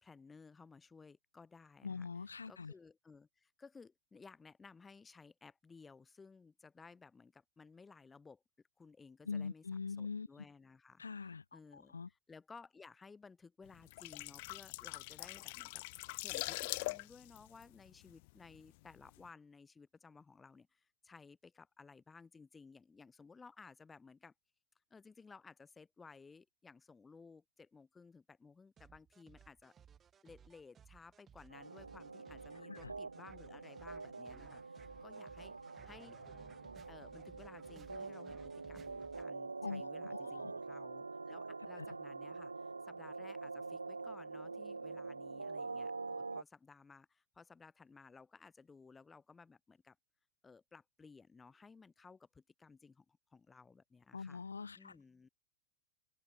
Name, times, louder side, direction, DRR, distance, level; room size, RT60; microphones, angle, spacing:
voice 1, 0.0-2.1 2.5-8.4 8.8-24.3 24.9-29.7 30.2-36.2 36.9-50.0 50.4-54.4 54.8-55.3, left 4 dB, 15° left, 3.6 m, -58 dB
voice 2, 1.8-2.7 9.3-10.3 11.0-12.1 32.7-32.9 39.6-40.5 41.8-41.9 54.1-54.9, left 5 dB, 75° left, 2.0 m, -43 dB
sound 1, 13.7-18.6 18.9-19.1, left 24 dB, 50° left, 0.5 m, -43 dB
sound 2, 28.8-39.3, right 8 dB, 20° right, 7.0 m, -61 dB
sound 3, 31.5-46.4, right 3 dB, 80° right, 0.3 m, -45 dB
open air
figure-of-eight pair, 90°, 0 cm